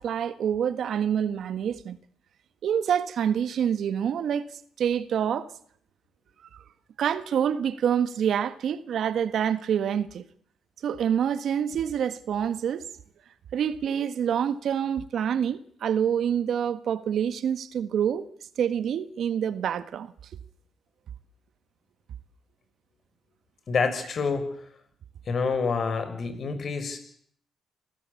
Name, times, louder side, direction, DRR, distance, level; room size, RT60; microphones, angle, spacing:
voice 1, 0.0-2.0 2.6-4.4 4.8-5.5 6.5-6.6 7.0-10.2 10.8-12.9 13.5-18.3 18.6-20.1, right 8 dB, 65° right, 1.5 m, -26 dB
voice 2, 23.7-24.5 25.3-27.0, left 5 dB, 50° left, 6.4 m, -27 dB
27.0 x 17.5 x 8.4 m
cardioid pair, 90°, 0 cm